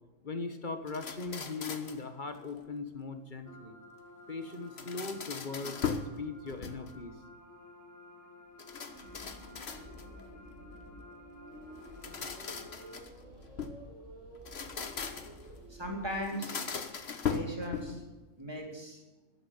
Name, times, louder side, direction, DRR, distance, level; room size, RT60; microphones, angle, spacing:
voice 1, 0.2-3.8 4.3-7.1 10.2-10.3, left 4 dB, 40° left, 8 dB, 1.5 m, -39 dB
sound 1, 0.9-2.1 4.5-6.2 6.5-7.1 8.6-10.2 11.8-13.8 14.4-15.5 16.2-18.1, left 6 dB, 55° left, 1.5 m, -39 dB
sound 2, 3.4-13.0, left 2 dB, 15° left, 2.1 m, -54 dB
sound 3, 8.6-16.3, right 1 dB, 70° right, 7.4 m, -51 dB
voice 2, 15.7-16.7 17.3-18.0 18.4-19.0, equal, 20° right, 0 dB, 3.6 m, -38 dB
14.0 x 10.5 x 8.4 m, 1.1 s
omnidirectional pair, 1.3 m